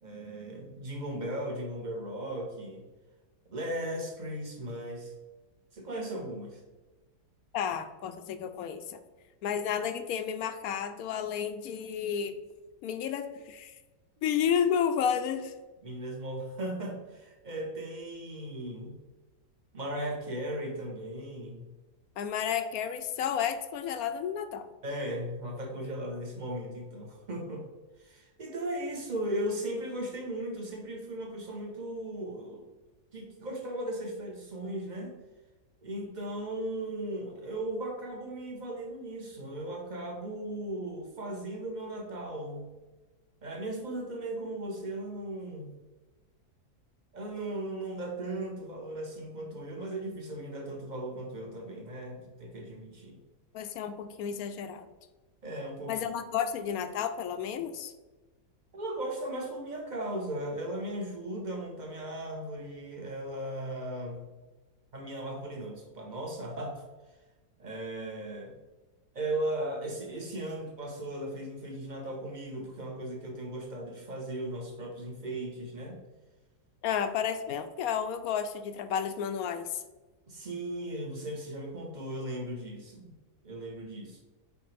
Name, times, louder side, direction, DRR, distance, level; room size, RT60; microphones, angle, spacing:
voice 1, 0.0-2.8 3.5-5.1 5.7-6.6 14.2-14.3 15.8-18.9 19.7-21.7 24.8-27.6 28.0-32.7 33.1-35.1 35.8-42.7 43.4-45.7 47.1-53.2 55.4-56.0 58.7-64.2 64.9-66.8 67.6-68.5 69.1-76.0 80.3-83.1 83.4-84.2, right 1 dB, 30° right, 1 dB, 1.1 m, -37 dB
voice 2, 7.5-9.0 9.4-12.3 12.8-13.8 14.2-15.5 22.2-24.7 53.5-54.9 55.9-57.9 76.8-79.8, left 8 dB, 70° left, 10 dB, 1.0 m, -31 dB
7.0 x 5.0 x 3.4 m, 1.2 s
omnidirectional pair, 1.7 m